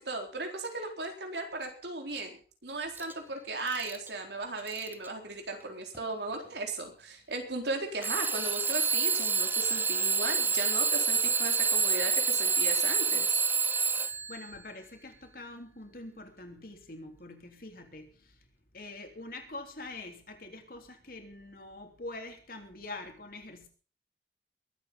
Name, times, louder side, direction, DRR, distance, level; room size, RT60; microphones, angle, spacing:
voice 1, 0.0-13.4, right 3 dB, 75° right, 3 dB, 4.1 m, -37 dB
Alarm / Clock, 3.0-3.1 3.7-4.1 4.7-5.1 5.9-6.0 8.0-14.4, right 5 dB, 10° right, 0.7 m, -28 dB
voice 2, 14.0-18.4 18.7-23.7, left 2 dB, 55° left, 4 dB, 3.3 m, -45 dB
22.0 x 8.6 x 5.3 m, 0.40 s
head